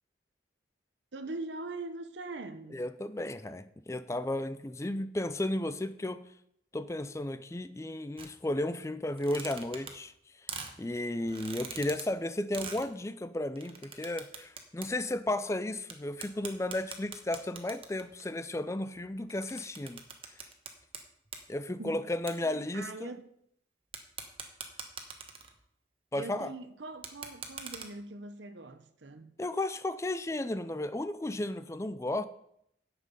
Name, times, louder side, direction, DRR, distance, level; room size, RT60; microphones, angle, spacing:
voice 1, 1.1-2.8 21.8-22.0 22.4-23.2 26.1-29.3, right 2 dB, 85° right, 0.9 m, -42 dB
voice 2, 2.7-6.2 6.7-10.1 10.4-10.5 10.8-20.0 21.5-23.1 26.1-26.5 29.4-32.2, left 1 dB, 15° left, 0.4 m, -34 dB
sound 1, 8.2-8.3 9.1-10.2 10.5-10.7 11.3-12.0 12.5-12.8 13.6-14.9 15.2-15.3 15.9-16.0 16.2-18.2 18.9-21.0 21.3-21.5 22.3-22.4 23.9-25.6 26.9-27.9, right 6 dB, 30° right, 1.1 m, -42 dB
9.9 x 7.5 x 5.3 m
head